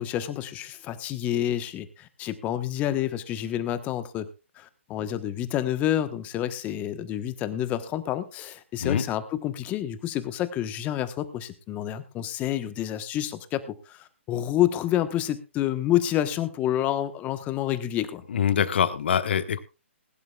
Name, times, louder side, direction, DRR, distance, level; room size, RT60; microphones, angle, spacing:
voice 1, 0.0-4.3 4.6-18.2, left 12 dB, 20° left, 12 dB, 1.2 m, -28 dB
voice 2, 18.3-19.6, left 8 dB, 60° left, 12 dB, 1.4 m, -24 dB
20.5 x 11.0 x 2.4 m, 0.28 s
hypercardioid pair, 135°, 7 cm